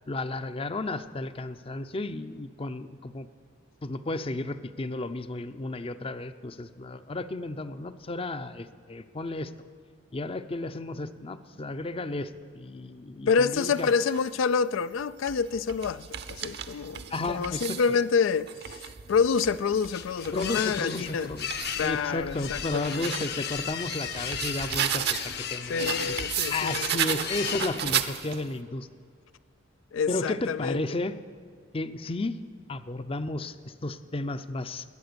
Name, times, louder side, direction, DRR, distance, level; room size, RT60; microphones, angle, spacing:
voice 1, 0.1-3.3 3.8-9.5 10.1-13.9 17.1-17.8 20.3-21.5 21.8-26.2 26.5-28.9 30.1-31.1 31.7-32.4 32.7-34.8, left 2 dB, 30° left, 0.5 m, -33 dB
voice 2, 13.3-21.3 21.8-23.1 25.7-27.2 29.9-30.8, left 5 dB, 85° left, 0.4 m, -27 dB
sound 1, 13.5-14.3 15.0-17.9 18.4-21.8 22.3-25.4 25.8-28.5, right 9 dB, 60° right, 0.8 m, -34 dB
sound 2, 19.3-28.2, left 8 dB, 55° left, 0.8 m, -36 dB
21.0 x 8.9 x 6.8 m
head